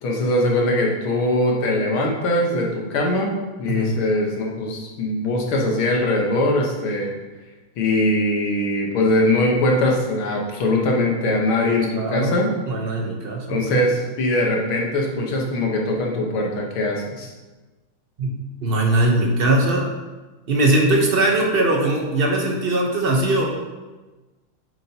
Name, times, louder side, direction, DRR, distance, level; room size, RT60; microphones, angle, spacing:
voice 1, 0.0-3.3 3.6-7.1 7.8-12.5 13.5-17.3, left 1 dB, 70° left, -1 dB, 2.1 m, -21 dB
voice 2, 11.9-12.3 12.7-13.8 18.2-19.9 20.5-23.4, right 2 dB, 40° right, 0 dB, 0.9 m, -20 dB
8.3 x 7.7 x 2.9 m, 1.2 s
omnidirectional pair, 2.4 m